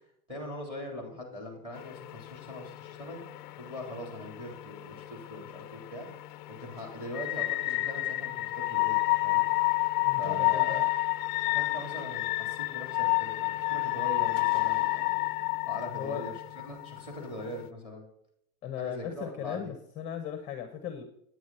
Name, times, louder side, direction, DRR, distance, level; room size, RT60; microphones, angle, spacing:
voice 1, 0.3-3.2 3.6-6.1 6.5-9.5 10.2-10.8 11.5-18.1 18.8-19.6, left 1 dB, 10° right, 1 dB, 3.4 m, -42 dB
sound 1, 1.7-17.7, left 21 dB, 35° left, 0.4 m, -30 dB
voice 2, 10.0-10.8 15.9-16.3 18.6-21.1, left 9 dB, 15° left, 7 dB, 0.8 m, -37 dB
9.7 x 9.3 x 4.2 m, 0.71 s
supercardioid pair, 165°, 45 cm